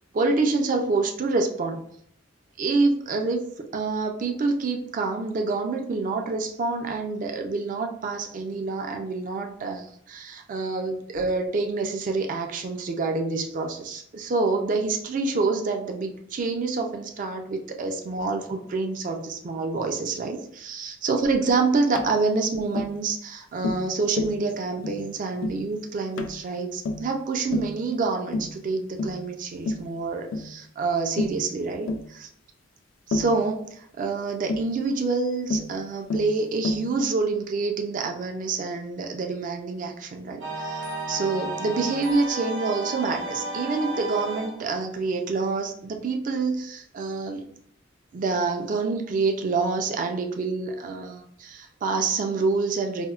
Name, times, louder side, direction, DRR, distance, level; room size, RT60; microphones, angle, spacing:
voice 1, 0.1-1.8 2.6-3.4 3.7-32.3 33.1-47.4 48.1-53.1, right 3 dB, 45° right, 4 dB, 0.3 m, -27 dB
Tap, 21.9-22.1 22.8-23.0 23.6-23.9 24.2-24.4 24.8-25.0 25.4-25.6 26.2-26.4 26.8-27.1 27.5-27.8 28.3-28.6 29.0-29.2 29.7-29.9 30.3-30.5 31.2-31.4 31.9-32.1 33.1-33.4 34.5-34.7 35.5-35.7 36.1-36.3 36.6-36.9, left 2 dB, 85° left, 0.3 m, -29 dB
sound 1, 40.4-44.7, right 2 dB, 75° right, 0.7 m, -33 dB
4.2 x 2.0 x 2.3 m, 0.66 s
head